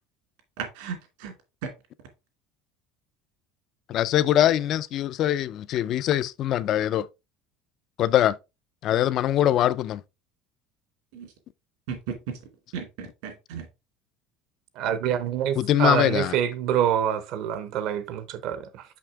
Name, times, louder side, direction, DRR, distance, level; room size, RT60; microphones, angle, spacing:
voice 1, 0.6-1.3 1.6-1.7 11.1-11.3 11.9-12.0 12.3-12.4 12.7-13.7, right 7 dB, 70° right, 2.5 m, -35 dB
voice 2, 3.9-7.1 8.0-8.4 8.8-10.0 15.6-16.4, left 12 dB, 35° left, 0.4 m, -22 dB
voice 3, 14.8-18.6, right 10 dB, 50° right, 0.8 m, -26 dB
5.9 x 5.8 x 3.6 m
cardioid pair, 175°, 0 cm